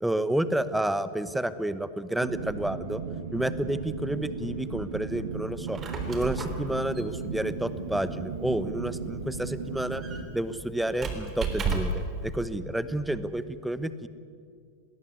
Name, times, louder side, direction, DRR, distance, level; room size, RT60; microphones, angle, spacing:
voice 1, 0.0-3.0 3.3-5.8 6.1-10.0 10.3-14.1, right 1 dB, 5° right, 14 dB, 1.1 m, -30 dB
sound 1, 2.2-10.2, right 5 dB, 65° right, 1.9 m, -36 dB
Squeak, 5.5-12.1, right 4 dB, 25° right, 3.5 m, -35 dB
sound 2, 6.3-13.3, right 4 dB, 50° right, 4.6 m, -52 dB
20.0 x 19.5 x 9.7 m, 2.2 s
figure-of-eight pair, 90°, 0 cm